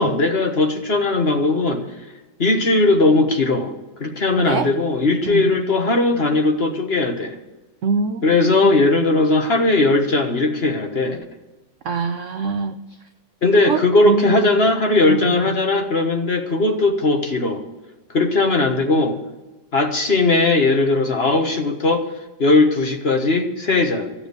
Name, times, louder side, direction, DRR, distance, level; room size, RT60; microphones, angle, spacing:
voice 1, 0.0-1.8 2.4-3.7 4.0-7.4 8.2-11.2 13.4-17.6 18.1-19.2 19.7-22.1 22.4-24.3, left 2 dB, 35° left, 4 dB, 1.3 m, -18 dB
voice 2, 7.8-8.3 8.6-8.8 11.8-12.8 13.6-14.5 15.1-15.6, right 4 dB, 65° right, 9 dB, 0.7 m, -24 dB
14.5 x 7.4 x 8.4 m, 1.1 s
omnidirectional pair, 2.0 m